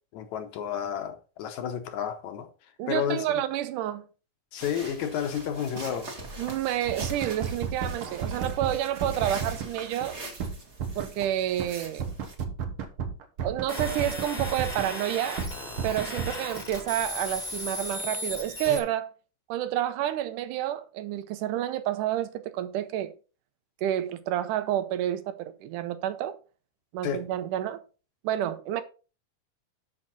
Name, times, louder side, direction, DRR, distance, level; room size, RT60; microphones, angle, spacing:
voice 1, 0.1-2.5 2.9-3.3 4.5-6.1 27.0-27.3, left 8 dB, 75° left, 2.1 m, -31 dB
voice 2, 2.8-4.1 6.4-10.2 11.0-12.1 13.4-15.5 15.8-19.1 19.5-23.1 23.8-26.4 26.9-27.8 28.2-28.8, right 12 dB, 90° right, 2.3 m, -29 dB
sound 1, 4.6-12.4, right 2 dB, 30° right, 1.4 m, -42 dB
sound 2, 6.8-9.7 10.0-10.1 10.4-11.3 11.6-11.7 12.0-14.9 15.2-16.3, right 6 dB, 60° right, 1.5 m, -32 dB
sound 3, 13.7-18.8, left 2 dB, 20° left, 1.1 m, -36 dB
7.6 x 6.5 x 4.1 m
omnidirectional pair, 3.6 m